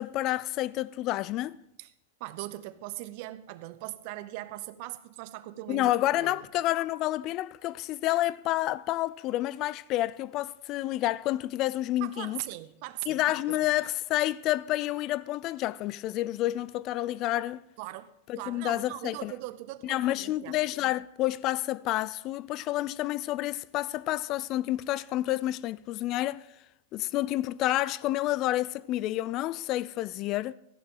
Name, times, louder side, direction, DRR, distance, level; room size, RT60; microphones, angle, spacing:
voice 1, 0.0-1.6 5.7-12.4 13.1-17.6 18.3-19.3 19.8-26.4 26.9-30.5, left 15 dB, 40° left, 0.3 m, -29 dB
voice 2, 2.2-5.9 6.2-6.4 12.0-13.6 17.8-18.1 18.4-20.6, right 17 dB, 55° right, 0.7 m, -40 dB
14.0 x 11.0 x 3.8 m
hypercardioid pair, 125°, 0 cm